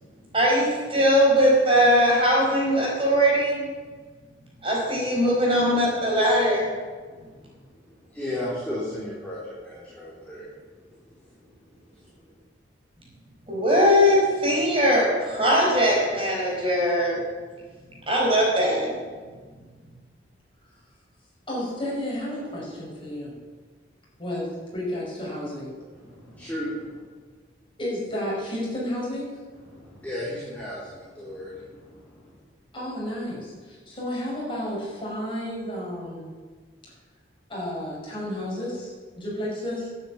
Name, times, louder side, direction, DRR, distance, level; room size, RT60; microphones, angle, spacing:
voice 1, 0.3-3.7 4.6-6.7 13.5-17.2 18.1-18.9, equal, 30° right, -3 dB, 4.5 m, -20 dB
voice 2, 7.8-10.6 10.8-11.0 11.2-12.1 25.9-27.0 29.5-32.3, left 1 dB, 10° left, -8 dB, 3.4 m, -35 dB
voice 3, 21.5-23.4 24.2-25.7 27.8-29.4 32.7-36.3 37.5-39.9, left 1 dB, 25° left, -4 dB, 5.7 m, -32 dB
12.0 x 9.7 x 8.6 m, 1.5 s
head